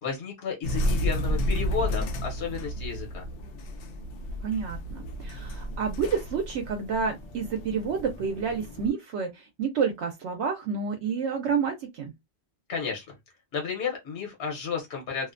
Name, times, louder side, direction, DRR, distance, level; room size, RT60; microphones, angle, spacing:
voice 1, 0.0-3.3 12.7-13.0 13.5-15.3, left 6 dB, 65° left, 1.1 m, -32 dB
sound 1, 0.6-8.9, equal, 90° left, 0.9 m, -32 dB
voice 2, 4.4-12.1, right 6 dB, 80° right, 0.8 m, -29 dB
2.5 x 2.1 x 2.4 m
omnidirectional pair, 1.2 m